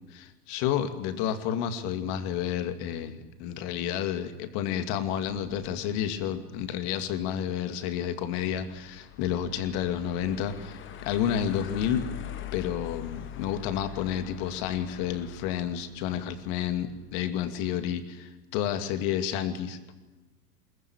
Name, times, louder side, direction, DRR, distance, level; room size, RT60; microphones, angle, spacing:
voice 1, 0.1-12.1 12.5-19.8, left 9 dB, 40° left, 9 dB, 2.5 m, -30 dB
sound 1, 5.3-17.3, left 12 dB, 25° left, 1.6 m, -44 dB
22.5 x 20.0 x 9.0 m, 1.2 s
figure-of-eight pair, 95°, 47 cm